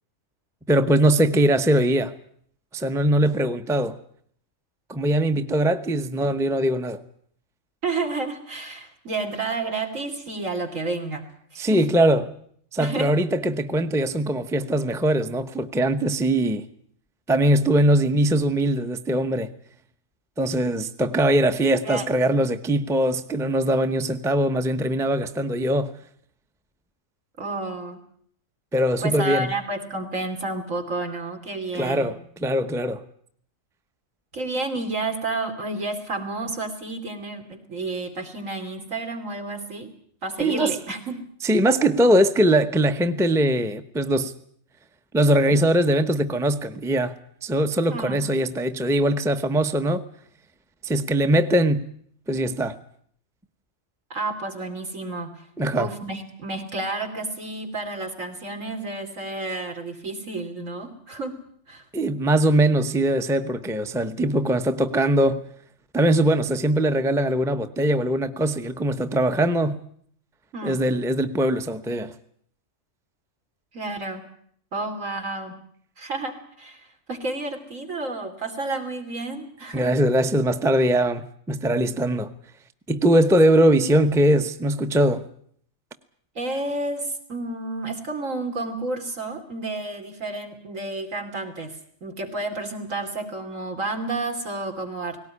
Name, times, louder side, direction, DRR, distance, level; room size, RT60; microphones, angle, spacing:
voice 1, 0.7-2.1 2.7-4.0 4.9-7.0 11.6-12.3 12.7-16.6 17.3-19.5 20.4-25.9 28.7-29.5 31.7-33.0 40.4-40.8 41.4-44.3 45.1-47.1 47.4-50.0 50.8-51.9 52.3-52.8 55.6-55.9 61.9-65.4 65.9-69.8 70.6-72.1 79.7-82.3 82.9-85.2, right 1 dB, 5° right, 10 dB, 0.7 m, -21 dB
voice 2, 7.8-11.2 11.5-11.8 12.8-13.1 21.8-22.1 27.4-28.0 29.0-32.1 34.3-39.9 40.2-41.2 47.9-48.2 54.1-55.5 55.7-61.4 61.7-61.9 70.5-70.8 73.7-74.2 74.7-75.6 76.0-79.9 86.3-95.2, right 2 dB, 75° right, 4 dB, 3.3 m, -31 dB
18.5 x 18.0 x 9.7 m, 0.63 s
omnidirectional pair, 1.4 m